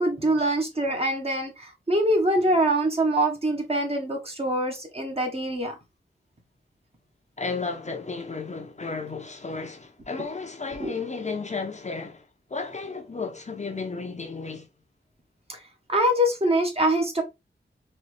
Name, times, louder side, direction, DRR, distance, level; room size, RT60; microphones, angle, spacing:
voice 1, 0.0-5.7 10.8-10.9 15.5-15.6 15.9-17.2, right 1 dB, 30° right, 1.4 m, -24 dB
voice 2, 7.4-12.2 12.5-14.7, left 4 dB, 35° left, 0.8 m, -33 dB
4.3 x 3.2 x 3.3 m
wide cardioid pair, 115°, 19 cm